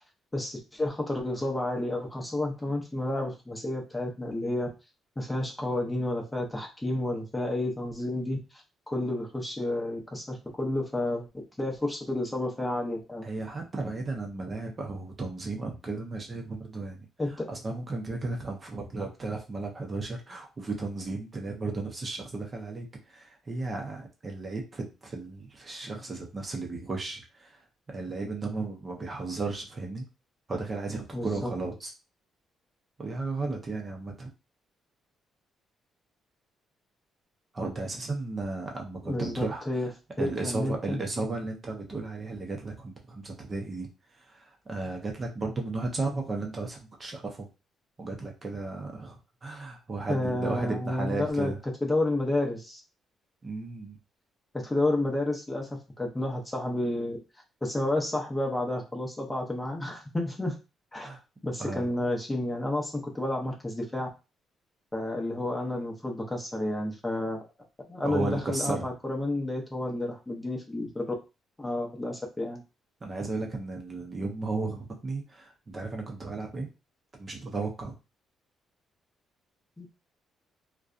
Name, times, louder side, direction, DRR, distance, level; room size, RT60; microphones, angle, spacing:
voice 1, 0.3-4.7 5.2-11.3 11.6-13.3 17.2-17.5 31.1-31.5 39.1-39.9 40.2-41.0 50.1-51.5 51.8-52.8 54.5-57.2 57.6-60.6 60.9-61.2 61.4-64.1 64.9-67.5 67.9-71.1 71.6-72.6 79.8-79.9, left 1 dB, 10° left, 0 dB, 0.7 m, -30 dB
voice 2, 13.2-27.6 27.9-30.0 30.5-31.9 33.0-34.3 37.5-39.9 40.2-43.9 44.1-47.5 48.0-51.6 53.4-54.0 61.0-61.2 61.6-61.9 68.0-68.9 73.0-76.7 77.2-77.9, right 3 dB, 30° right, 2 dB, 0.6 m, -34 dB
2.7 x 2.2 x 2.4 m, 0.28 s
cardioid pair, 115°, 0 cm